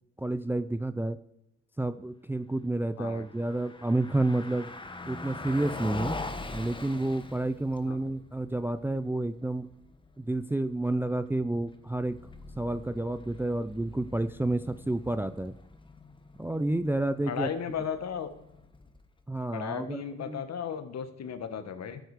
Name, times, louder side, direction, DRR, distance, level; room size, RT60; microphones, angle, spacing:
voice 1, 0.2-1.2 1.8-4.7 5.0-6.2 6.5-9.7 10.2-12.2 12.6-15.5 16.4-17.5 19.3-20.4, right 2 dB, 5° right, 12 dB, 0.5 m, -30 dB
Car passing by, 3.1-19.2, left 3 dB, 15° left, 1.1 m, -44 dB
voice 2, 17.3-18.3 19.5-22.0, left 7 dB, 60° left, 10 dB, 1.5 m, -35 dB
13.0 x 8.1 x 4.9 m, 0.88 s
cardioid pair, 90°, 30 cm